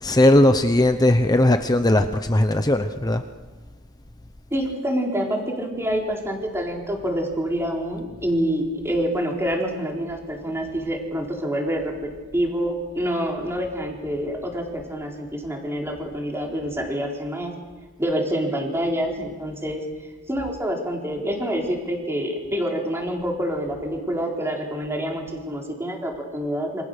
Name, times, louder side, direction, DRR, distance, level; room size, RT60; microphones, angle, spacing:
voice 1, 0.0-3.2, left 1 dB, 20° left, 7 dB, 0.9 m, -18 dB
voice 2, 4.5-17.5 18.0-19.8 20.3-26.8, equal, 10° right, 0 dB, 4.1 m, -27 dB
28.0 x 25.5 x 6.7 m, 1.4 s
head